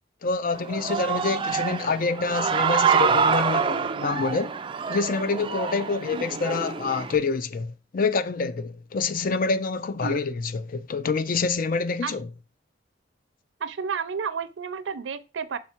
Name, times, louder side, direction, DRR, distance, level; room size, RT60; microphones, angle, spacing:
voice 1, 0.2-4.6 4.9-12.3, left 4 dB, 50° left, 0.5 m, -27 dB
Human voice / Cheering, 0.5-7.2, right 6 dB, 25° right, 0.3 m, -26 dB
voice 2, 13.6-15.6, right 6 dB, 80° right, 0.5 m, -31 dB
5.7 x 3.7 x 4.4 m
head